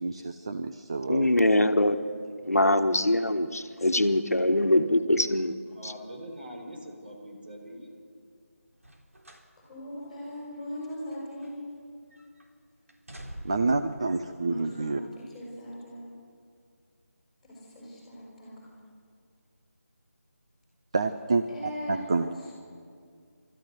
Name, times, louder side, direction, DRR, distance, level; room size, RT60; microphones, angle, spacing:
voice 1, 0.0-1.3 13.4-15.0 20.9-21.4 21.9-22.3, right 3 dB, 20° right, 8 dB, 0.5 m, -28 dB
voice 2, 1.1-2.0 2.4-5.5 5.8-5.9, left 1 dB, 75° left, 8 dB, 1.4 m, -23 dB
voice 3, 5.7-7.9, equal, 40° right, 1 dB, 4.2 m, -43 dB
sound 1, 8.8-9.5 9.9-10.1 10.8-11.8 12.1-12.5 12.9-13.8 14.7-14.8, right 1 dB, 60° right, 3.8 m, -47 dB
voice 4, 9.6-11.7 14.3-16.1 17.4-18.7 21.5-22.5, equal, ahead, -5 dB, 5.7 m, -40 dB
29.0 x 14.0 x 8.1 m, 2.3 s
figure-of-eight pair, 160°, 8 cm